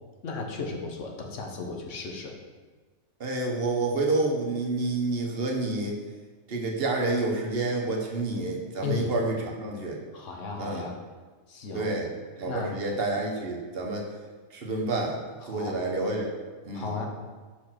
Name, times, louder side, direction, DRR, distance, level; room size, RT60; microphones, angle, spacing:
voice 1, 0.2-2.4 8.8-9.1 10.1-11.0 11.5-11.9 12.5-12.7 15.4-15.7 16.7-17.1, left 4 dB, 60° left, 1 dB, 1.2 m, -35 dB
voice 2, 3.2-6.0 6.5-10.0 10.6-10.9 11.7-12.1 12.4-14.1 14.5-15.2 15.5-16.3 16.6-16.9, right 2 dB, 45° right, 0 dB, 1.1 m, -28 dB
5.1 x 4.4 x 5.9 m, 1.4 s
omnidirectional pair, 1.5 m